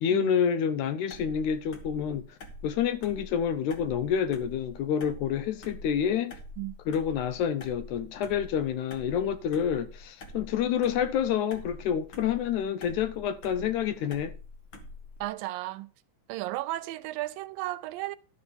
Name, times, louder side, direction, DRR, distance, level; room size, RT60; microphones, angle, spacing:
voice 1, 0.0-2.4 2.6-6.4 6.9-14.3, left 8 dB, 75° left, 1.9 m, -28 dB
sound 1, 1.1-15.3, left 2 dB, 45° left, 1.7 m, -46 dB
voice 2, 15.2-15.9 16.3-18.2, right 17 dB, 90° right, 2.4 m, -34 dB
12.5 x 4.9 x 7.0 m
omnidirectional pair, 3.9 m